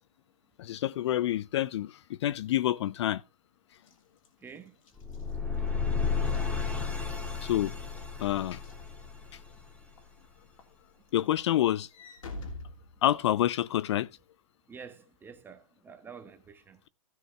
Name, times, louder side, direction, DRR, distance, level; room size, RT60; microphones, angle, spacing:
voice 1, 0.6-3.2 7.4-7.7 8.2-8.6 11.1-11.9 13.0-14.1, left 13 dB, 50° left, 0.4 m, -28 dB
Walk footsteps / Slam, 3.7-9.5 10.0-10.3 10.6-13.6, left 2 dB, 70° left, 3.1 m, -48 dB
voice 2, 4.4-4.8 14.7-16.8, right 6 dB, 10° right, 1.4 m, -48 dB
sound 1, 5.0-10.0, left 5 dB, 5° left, 2.2 m, -32 dB
15.5 x 6.1 x 3.3 m
hypercardioid pair, 130°, 18 cm